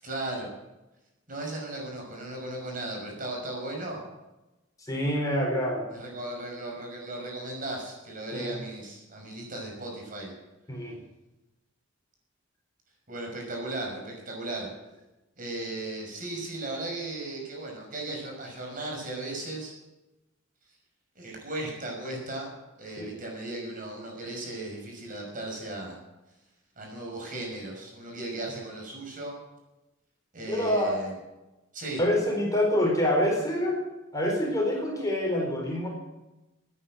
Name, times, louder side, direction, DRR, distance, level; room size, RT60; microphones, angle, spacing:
voice 1, 0.0-0.5 1.3-4.0 5.9-10.3 13.1-14.7 15.4-19.7 21.2-22.5 22.8-26.0 26.8-29.3 30.3-31.1 31.7-32.0, right 2 dB, 45° right, 0 dB, 5.9 m, -36 dB
voice 2, 4.8-5.9 8.3-8.6 10.7-11.0 23.0-23.1 30.5-31.0 32.0-33.8 34.1-35.9, left 1 dB, 20° left, -1 dB, 4.5 m, -26 dB
18.0 x 10.0 x 7.9 m, 1.0 s
head